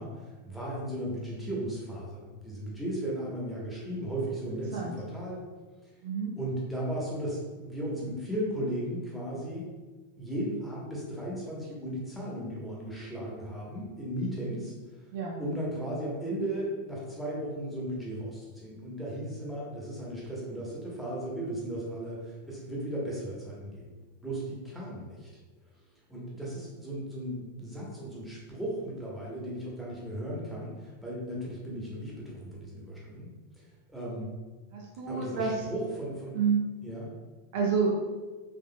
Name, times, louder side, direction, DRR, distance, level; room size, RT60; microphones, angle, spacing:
voice 1, 0.0-5.4 6.4-9.7 10.2-15.0 15.4-23.9 24.2-25.3 26.1-33.3 33.9-34.3 35.1-36.3 36.8-37.1, right 1 dB, ahead, -6 dB, 1.1 m, -36 dB
voice 2, 6.0-6.3 15.1-15.4 34.7-35.5 36.3-36.6 37.5-37.9, right 5 dB, 50° right, -1 dB, 0.5 m, -28 dB
3.7 x 3.5 x 2.2 m, 1.3 s
figure-of-eight pair, 90°, 0 cm